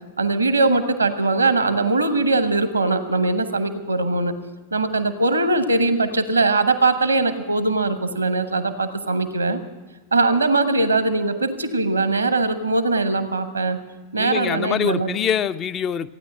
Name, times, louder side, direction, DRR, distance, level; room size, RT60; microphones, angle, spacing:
voice 1, 0.2-4.3 4.7-9.6 10.1-13.8 14.1-15.1, right 3 dB, 80° right, 11 dB, 0.9 m, -21 dB
voice 2, 14.2-16.1, left 8 dB, 30° left, 13 dB, 0.4 m, -24 dB
15.5 x 9.5 x 7.6 m, 1.3 s
figure-of-eight pair, 90°, 0 cm